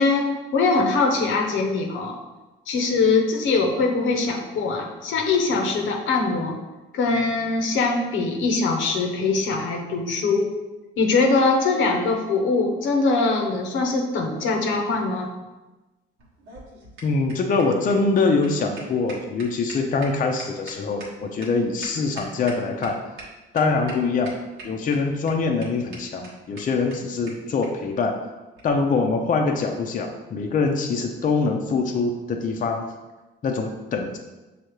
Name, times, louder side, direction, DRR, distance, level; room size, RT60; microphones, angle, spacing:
voice 1, 0.0-2.2 2.7-6.6 6.9-10.5 11.0-15.3, left 3 dB, 80° left, 2 dB, 0.8 m, -22 dB
sound 1, 16.2-22.9 23.2-23.3 23.5-24.0 24.2-25.0 25.3-25.4 25.6-25.7 25.9-26.0 26.2-26.3 26.6-26.7 26.9-27.0 27.3-27.4 27.6-27.7 28.5-28.7, right 3 dB, 85° right, 1.3 m, -41 dB
voice 2, 17.0-23.0 23.5-24.3 24.6-28.2 28.6-32.9 33.4-34.2, left 4 dB, 40° left, 3 dB, 0.5 m, -24 dB
6.3 x 2.8 x 3.0 m, 1.1 s
cardioid pair, 90°, 20 cm